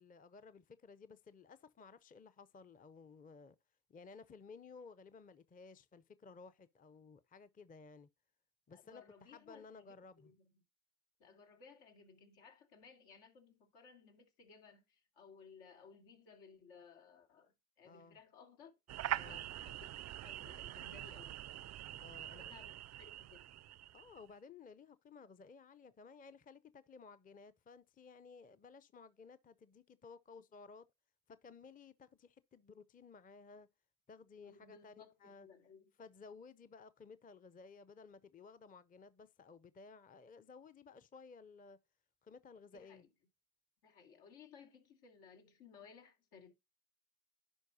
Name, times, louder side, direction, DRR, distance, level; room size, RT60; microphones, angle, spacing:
voice 1, 0.0-3.6 3.9-8.1 8.7-10.3 17.8-18.2 19.2-19.5 22.0-22.4 23.9-30.9 31.3-33.7 34.1-35.5 36.0-41.8 42.2-43.0, left 4 dB, 20° left, 0.6 m, -57 dB
voice 2, 8.7-10.6 11.2-18.7 19.1-19.9 20.2-21.4 22.2-23.5 34.4-35.9 42.7-43.1 43.8-46.5, left 5 dB, 80° left, 2.5 m, -60 dB
sound 1, 18.9-24.2, right 13 dB, 40° right, 0.4 m, -44 dB
11.0 x 4.6 x 2.7 m
supercardioid pair, 70°, 44 cm